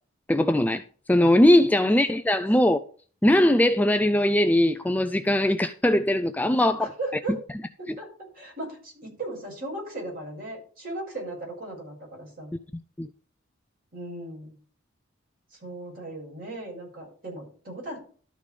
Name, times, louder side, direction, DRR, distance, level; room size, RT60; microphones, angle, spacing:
voice 1, 0.3-0.8 1.1-2.8 3.2-6.9 7.9-8.0 13.0-13.1, left 1 dB, 10° left, 0.4 m, -20 dB
voice 2, 1.8-2.2 6.8-7.4 7.8-8.1 8.3-12.5 13.9-14.5 15.6-18.0, right 2 dB, 45° right, 6.1 m, -37 dB
12.5 x 4.9 x 5.3 m
head